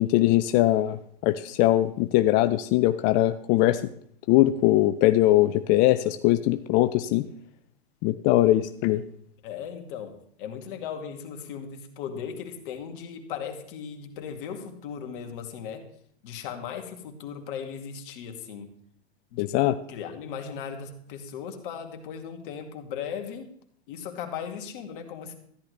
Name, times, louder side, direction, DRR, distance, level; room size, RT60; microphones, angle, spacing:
voice 1, 0.0-3.8 4.3-7.3 8.0-9.0 19.4-19.8, left 15 dB, 30° left, 11 dB, 0.4 m, -21 dB
voice 2, 9.4-15.9 16.2-18.7 19.3-19.6 19.9-23.5 23.9-25.3, left 7 dB, 55° left, 5 dB, 2.1 m, -37 dB
13.5 x 11.0 x 3.3 m, 0.67 s
hypercardioid pair, 110°, 32 cm